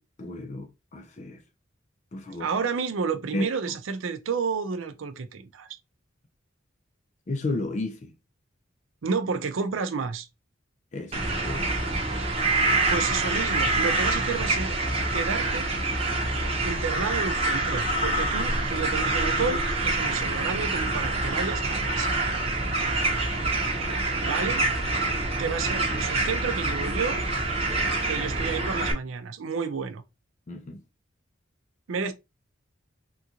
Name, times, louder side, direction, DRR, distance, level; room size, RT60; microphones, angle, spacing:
voice 1, 0.0-1.4 2.1-2.5 3.3-3.7 7.3-8.1 10.9-11.7 30.5-30.8, left 2 dB, 35° left, 0.4 m, -33 dB
voice 2, 2.4-5.8 9.0-10.3 12.9-14.7 15.1-15.7 16.6-22.1 24.2-24.6 25.4-27.2 28.1-30.0 31.9-32.1, right 5 dB, 80° right, 0.5 m, -31 dB
sound 1, 11.1-28.9, right 2 dB, 30° right, 0.8 m, -26 dB
3.6 x 2.4 x 2.8 m
head